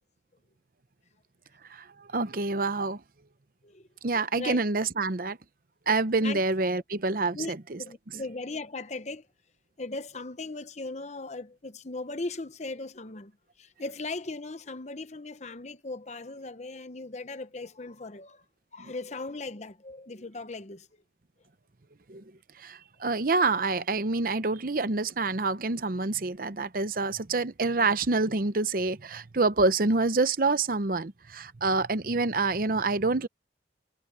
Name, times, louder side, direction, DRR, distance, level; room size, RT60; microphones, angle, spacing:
voice 1, 1.7-3.0 4.0-5.4 5.9-7.8 22.1-22.2 22.6-33.3, right 3 dB, 55° right, 0.8 m, -27 dB
voice 2, 4.1-4.6 6.2-6.4 7.3-7.5 7.8-9.3 9.8-13.3 13.6-18.4 18.7-20.9, left 3 dB, 40° left, 0.9 m, -38 dB
head